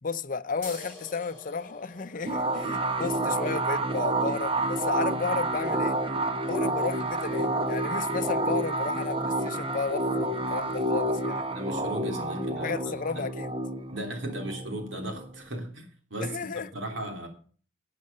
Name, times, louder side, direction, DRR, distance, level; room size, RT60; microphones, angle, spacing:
voice 1, 0.0-6.0 6.4-11.5 12.6-13.5 16.2-16.7, left 5 dB, 45° left, 0.6 m, -33 dB
sound 1, 0.6-7.7, left 3 dB, 15° left, 3.9 m, -50 dB
sound 2, 2.3-15.5, right 2 dB, 30° right, 1.0 m, -29 dB
voice 2, 11.5-13.2 13.9-17.3, right 1 dB, 85° right, 3.2 m, -36 dB
12.5 x 7.6 x 6.7 m
head